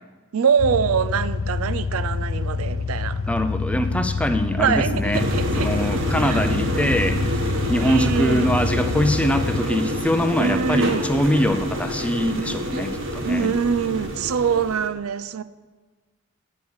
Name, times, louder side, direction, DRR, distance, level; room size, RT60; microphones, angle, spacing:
voice 1, 0.3-3.2 4.6-5.7 6.2-6.4 7.8-8.6 10.4-11.1 13.2-15.4, right 6 dB, 80° right, 14 dB, 0.5 m, -24 dB
sound 1, 0.6-9.6, left 4 dB, 70° left, 0.4 m, -27 dB
voice 2, 3.3-5.3 5.6-7.4 7.7-13.5, left 1 dB, 5° left, 8 dB, 0.5 m, -23 dB
sound 2, 5.1-14.9, right 1 dB, 60° right, 1.4 m, -27 dB
9.4 x 6.8 x 7.1 m, 1.3 s
head